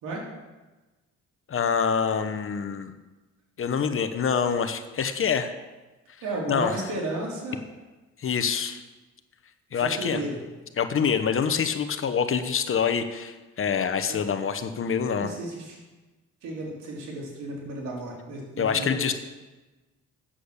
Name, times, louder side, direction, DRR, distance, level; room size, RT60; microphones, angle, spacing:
voice 1, 1.5-2.9 3.6-5.5 6.5-6.8 8.2-8.8 9.7-10.2 10.8-15.3 18.6-19.1, left 6 dB, 45° left, 9 dB, 1.0 m, -26 dB
voice 2, 6.2-7.6 9.8-10.4 14.1-14.2 15.1-15.8 16.4-19.1, right 2 dB, 85° right, -2 dB, 3.2 m, -33 dB
8.6 x 7.7 x 6.6 m, 1.2 s
cardioid pair, 90°, 30 cm